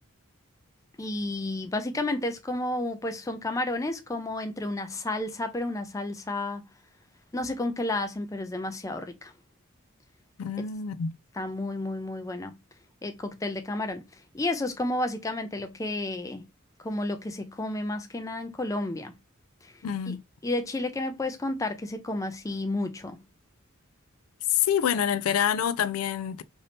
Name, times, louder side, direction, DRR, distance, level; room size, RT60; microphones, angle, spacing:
voice 1, 1.0-6.6 7.3-9.3 11.4-12.6 13.0-14.0 14.3-16.5 16.8-19.1 19.6-19.7 20.1-20.2 20.4-23.2 24.6-24.7, left 2 dB, 15° left, 0.4 m, -31 dB
voice 2, 10.4-11.2 19.8-20.2 24.5-26.4, left 9 dB, 85° left, 0.3 m, -26 dB
2.7 x 2.6 x 3.3 m
head